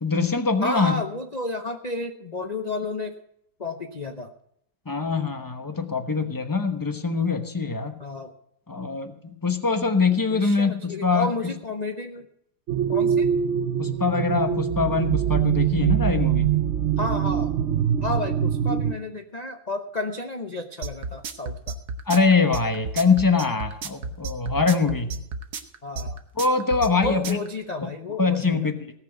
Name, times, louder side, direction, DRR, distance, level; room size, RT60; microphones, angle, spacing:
voice 1, 0.0-1.0 4.9-8.0 8.7-11.3 13.8-16.5 22.1-25.1 26.4-27.4 28.2-28.7, left 4 dB, 20° left, 8 dB, 0.6 m, -23 dB
voice 2, 0.6-3.2 3.6-4.3 8.0-8.3 10.3-12.3 12.9-13.3 17.0-17.5 18.0-21.8 25.8-26.2 27.0-28.7, left 2 dB, 85° left, 4 dB, 0.3 m, -31 dB
sound 1, 12.7-19.0, right 9 dB, 80° right, 0.6 m, -23 dB
sound 2, 20.8-27.5, right 4 dB, 60° right, 1.5 m, -32 dB
18.0 x 6.0 x 7.9 m, 0.75 s
omnidirectional pair, 2.0 m